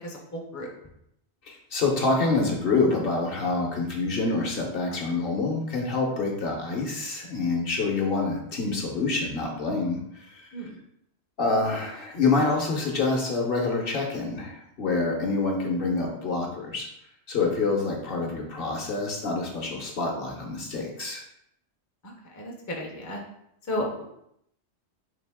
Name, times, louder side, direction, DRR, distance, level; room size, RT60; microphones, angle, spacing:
voice 1, 0.0-0.7 10.5-10.7 22.0-23.2 23.6-24.0, left 1 dB, 20° left, -1 dB, 0.5 m, -33 dB
voice 2, 1.4-10.5 11.4-16.9 17.3-21.2, left 3 dB, 55° left, 0 dB, 1.0 m, -27 dB
3.9 x 2.9 x 3.4 m, 0.75 s
omnidirectional pair, 1.2 m